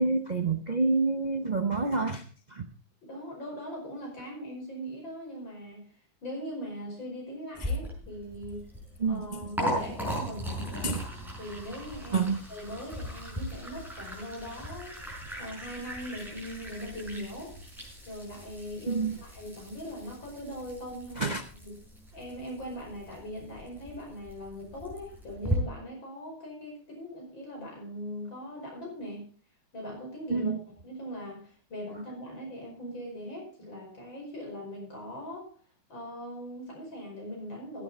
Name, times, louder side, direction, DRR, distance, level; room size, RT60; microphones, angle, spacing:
voice 1, 0.0-2.2 2.5-2.7 9.0-9.5 10.8-11.1 12.1-12.4 18.9-19.2 21.2-21.4 30.3-30.6, right 3 dB, 70° right, 7 dB, 0.4 m, -28 dB
voice 2, 3.1-5.9 6.2-8.6 9.1-11.0 11.4-12.2 12.5-15.0 15.4-17.5 18.1-21.8 22.1-29.3 29.7-35.5 35.9-37.8, equal, 75° left, -1 dB, 6.0 m, -40 dB
Liquid, 7.5-25.5, equal, ahead, 5.3 m, -38 dB
15.0 x 9.1 x 4.2 m, 0.42 s
omnidirectional pair, 2.1 m